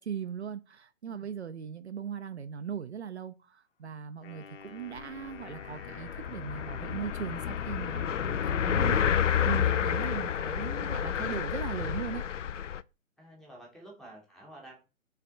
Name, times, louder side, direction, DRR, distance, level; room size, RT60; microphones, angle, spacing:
voice 1, 0.0-9.0 9.4-12.2, right 8 dB, 55° right, 0.6 m, -39 dB
Wind instrument woodwind instrument, 4.2-8.7, left 4 dB, 45° left, 1.3 m, -50 dB
sound 1, 5.0-5.1 5.3-12.8, left 9 dB, 65° left, 0.5 m, -30 dB
voice 2, 13.2-14.8, right 1 dB, ahead, 0.8 m, -51 dB
5.7 x 3.3 x 5.1 m
figure-of-eight pair, 130°, 40 cm